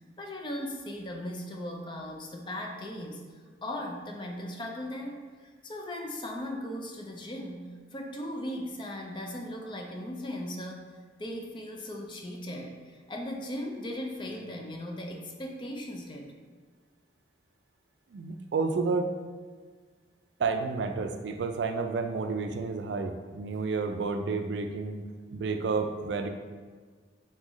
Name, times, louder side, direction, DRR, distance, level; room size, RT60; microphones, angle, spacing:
voice 1, 0.2-3.2 3.6-10.9 11.2-16.3, left 1 dB, 25° left, 2 dB, 0.4 m, -38 dB
voice 2, 18.1-19.1 20.4-25.0 25.3-26.3, right 4 dB, 75° right, 6 dB, 0.3 m, -30 dB
4.0 x 3.8 x 3.0 m, 1.5 s
head